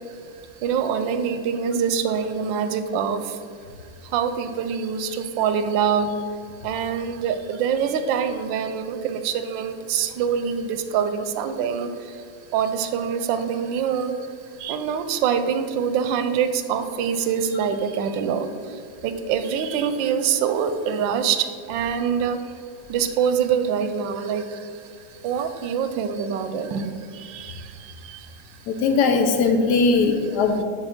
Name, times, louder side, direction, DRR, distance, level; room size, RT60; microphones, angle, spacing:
voice 1, 0.6-3.4 4.0-6.2 6.6-12.2 12.5-14.2 14.6-22.5 22.9-24.8 25.1-28.4 28.8-28.9 30.0-30.5, right 7 dB, 90° right, 9 dB, 1.3 m, -25 dB
voice 2, 28.7-30.6, left 4 dB, 70° left, 5 dB, 1.1 m, -19 dB
7.1 x 3.5 x 5.7 m, 2.2 s
omnidirectional pair, 2.0 m